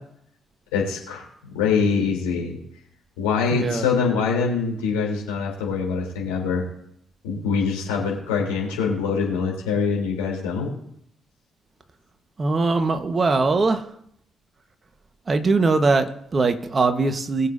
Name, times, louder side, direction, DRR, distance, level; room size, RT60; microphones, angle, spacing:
voice 1, 0.7-2.6 3.2-6.6 7.2-10.7, left 5 dB, 75° left, -2 dB, 3.6 m, -24 dB
voice 2, 3.5-3.8 12.4-13.8 15.3-17.5, right 3 dB, 35° right, 7 dB, 1.4 m, -21 dB
21.5 x 7.3 x 2.8 m, 0.72 s
figure-of-eight pair, 45°, 0 cm